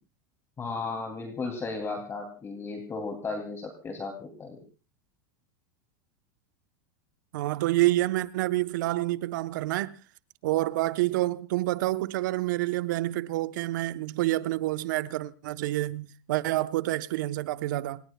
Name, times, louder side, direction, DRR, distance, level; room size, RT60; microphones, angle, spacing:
voice 1, 0.6-4.6, left 4 dB, 25° left, 2.9 m, -35 dB
voice 2, 7.3-9.9 10.4-18.0, right 17 dB, 70° right, 1.0 m, -28 dB
27.0 x 20.0 x 2.3 m
hypercardioid pair, 105°, 11 cm